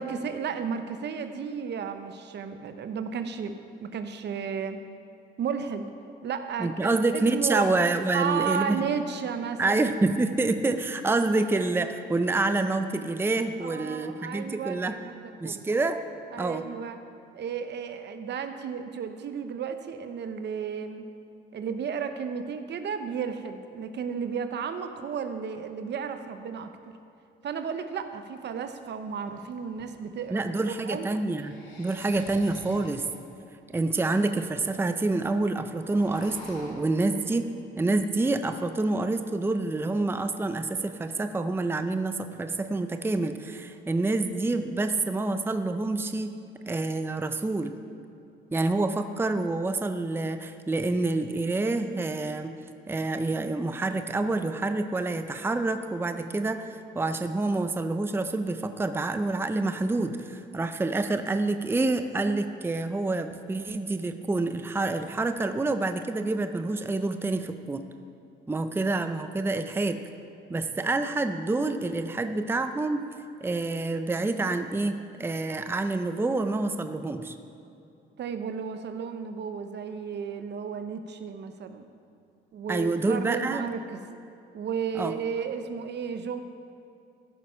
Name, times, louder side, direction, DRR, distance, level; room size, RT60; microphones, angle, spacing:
voice 1, 0.0-4.8 5.4-5.9 6.2-7.7 8.1-9.8 13.6-15.8 16.3-17.0 17.3-21.0 21.5-26.7 27.4-30.4 30.8-31.1 78.2-81.9 82.5-84.0 84.5-86.4, right 6 dB, 60° right, 8 dB, 0.8 m, -33 dB
voice 2, 6.6-8.8 9.6-15.0 15.4-16.0 16.4-16.7 30.3-31.5 31.8-33.1 33.7-37.5 37.8-46.4 46.7-47.8 48.5-52.5 52.9-67.8 68.5-70.0 70.5-73.1 73.4-77.3 82.7-83.7 85.0-85.1, right 2 dB, 10° right, 8 dB, 0.5 m, -27 dB
sound 1, 28.5-28.6 29.1-30.3 31.2-33.2 33.8-33.9 34.1-34.2 34.4-34.8 35.1-35.3 35.6-36.7, left 2 dB, 75° left, 2.5 m, -48 dB
14.5 x 6.5 x 5.6 m, 2.6 s
cardioid pair, 90°, 20 cm